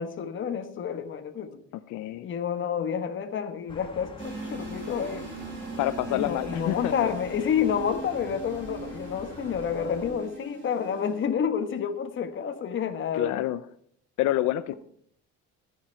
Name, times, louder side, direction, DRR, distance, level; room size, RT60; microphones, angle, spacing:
voice 1, 0.0-1.6 2.2-5.3 6.1-13.4, left 7 dB, 40° left, 8 dB, 1.3 m, -29 dB
voice 2, 1.9-2.2 5.8-6.9 13.1-13.6 14.2-14.7, left 14 dB, 80° left, 13 dB, 0.6 m, -27 dB
sound 1, 3.7-10.1, left 2 dB, 15° left, 1.5 m, -45 dB
sound 2, 4.2-11.2, right 3 dB, 40° right, 3.9 m, -40 dB
13.5 x 10.5 x 4.4 m, 0.62 s
cardioid pair, 155°, 29 cm